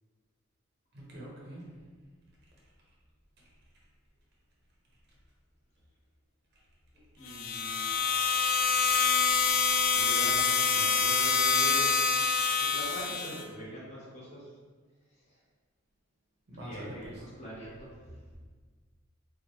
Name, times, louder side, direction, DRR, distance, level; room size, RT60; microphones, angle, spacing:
voice 1, 0.9-1.7 9.4-9.5 16.5-17.1, right 1 dB, 50° right, -4 dB, 0.9 m, -44 dB
voice 2, 7.2-8.0 9.9-12.0 12.7-14.5 15.2-15.4 16.6-17.9, equal, 35° left, -7 dB, 1.0 m, -43 dB
sound 1, 7.3-13.4, left 5 dB, 70° left, 0.4 m, -26 dB
4.3 x 2.4 x 3.0 m, 1.5 s
head